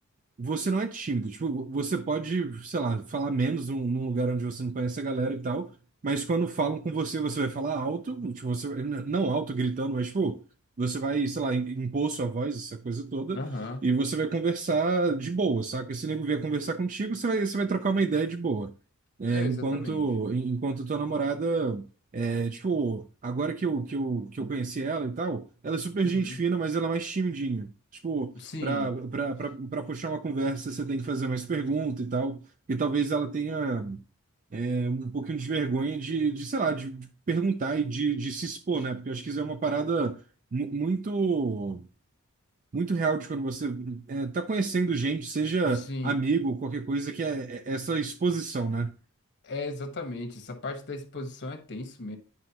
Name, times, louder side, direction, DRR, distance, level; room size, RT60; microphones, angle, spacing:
voice 1, 0.4-5.7 6.0-10.4 10.8-13.4 13.8-18.7 19.2-21.9 22.1-27.7 28.0-28.3 28.6-32.4 32.7-34.0 34.5-40.2 40.5-41.9 42.7-48.9, right 4 dB, 35° right, 0.4 m, -29 dB
voice 2, 13.3-13.9 19.3-20.0 26.0-26.4 28.4-28.9 45.7-46.2 49.4-52.2, left 2 dB, 50° left, 1.3 m, -36 dB
9.6 x 5.1 x 2.9 m
head